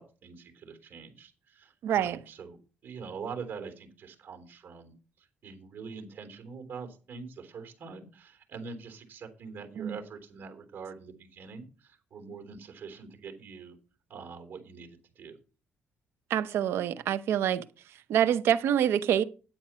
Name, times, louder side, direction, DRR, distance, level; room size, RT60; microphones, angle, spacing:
voice 1, 0.0-2.6 2.8-13.8 14.1-15.4, right 5 dB, 50° right, 3.4 m, -44 dB
voice 2, 1.8-2.2 9.8-10.0 16.3-17.6 18.1-19.2, right 10 dB, 70° right, 0.8 m, -26 dB
10.0 x 8.6 x 4.3 m
cardioid pair, 110°, 4 cm